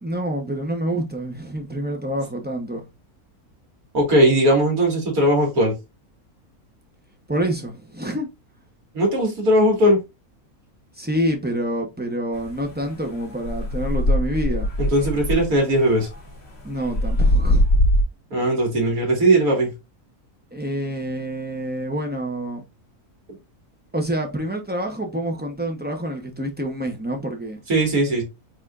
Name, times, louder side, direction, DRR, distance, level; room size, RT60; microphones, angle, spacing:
voice 1, 0.0-2.9 7.3-8.3 11.0-14.7 16.6-17.7 20.5-22.6 23.9-27.6, right 1 dB, 15° right, 0.3 m, -27 dB
voice 2, 3.9-5.7 8.9-10.0 14.8-16.1 18.3-19.7 27.7-28.2, right 1 dB, 70° right, 2.4 m, -18 dB
sound 1, 12.3-18.0, equal, 15° left, 2.8 m, -22 dB
4.9 x 3.7 x 2.4 m
omnidirectional pair, 1.6 m